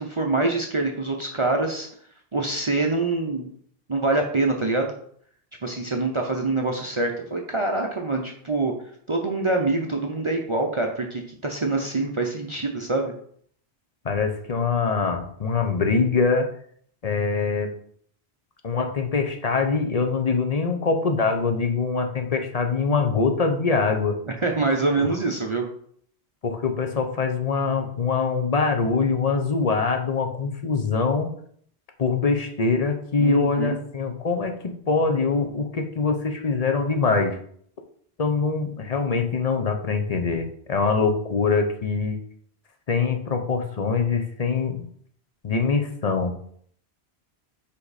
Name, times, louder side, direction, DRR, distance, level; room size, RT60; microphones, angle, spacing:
voice 1, 0.0-1.9 2.3-3.5 3.9-4.9 5.6-8.7 9.1-13.1 24.4-25.7 33.2-33.8, right 2 dB, 35° right, 1 dB, 0.6 m, -25 dB
voice 2, 14.0-16.5 17.0-17.7 18.6-24.2 26.4-31.3 32.0-34.5 34.9-37.4 38.2-42.2 42.9-44.9 45.4-46.3, left 4 dB, 40° left, 5 dB, 0.8 m, -23 dB
5.6 x 5.0 x 4.1 m, 0.62 s
omnidirectional pair, 1.1 m